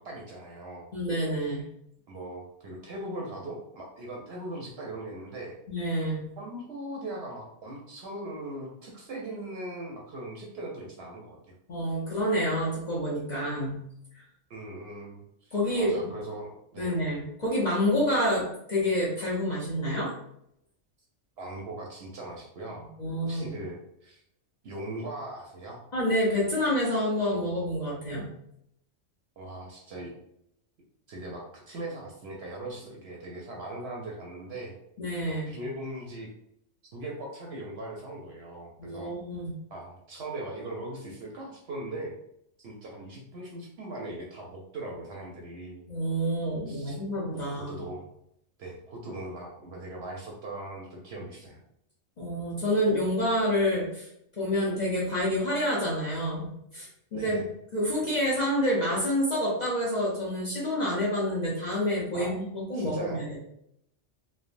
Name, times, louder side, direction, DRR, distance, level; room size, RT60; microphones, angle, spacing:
voice 1, 0.0-0.9 2.1-5.6 6.4-11.4 14.5-17.0 21.4-22.9 23.2-24.2 24.6-25.8 29.4-30.1 31.1-34.8 35.3-36.3 36.9-39.1 39.7-42.2 42.6-45.9 46.6-47.0 47.3-48.1 48.6-51.6 57.1-57.4 62.1-62.4 62.7-63.3, right 1 dB, 65° right, -2 dB, 0.8 m, -40 dB
voice 2, 0.9-1.6 5.7-6.2 11.7-13.8 14.2-14.3 15.5-15.9 16.8-20.1 23.0-23.5 25.9-28.3 35.0-35.5 38.8-39.5 45.9-47.9 52.2-54.1 54.4-57.4 57.7-63.4, equal, 45° left, -6 dB, 0.6 m, -28 dB
3.3 x 2.0 x 2.5 m, 0.76 s
omnidirectional pair, 1.3 m